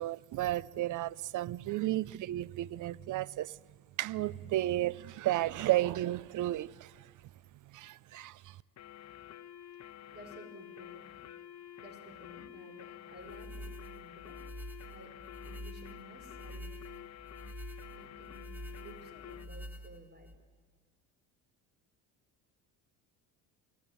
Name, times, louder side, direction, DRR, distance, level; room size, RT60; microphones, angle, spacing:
voice 1, 0.0-3.6 4.0-7.1 7.7-8.6, right 15 dB, 50° right, 0.5 m, -33 dB
sound 1, 8.8-19.5, left 11 dB, 40° left, 1.0 m, -49 dB
voice 2, 10.1-11.2 11.8-14.5 14.9-16.8 17.9-20.3, equal, 25° right, 5.1 m, -54 dB
sound 2, 13.2-20.4, equal, 5° right, 1.8 m, -47 dB
24.0 x 14.5 x 9.7 m
supercardioid pair, 75°, 41 cm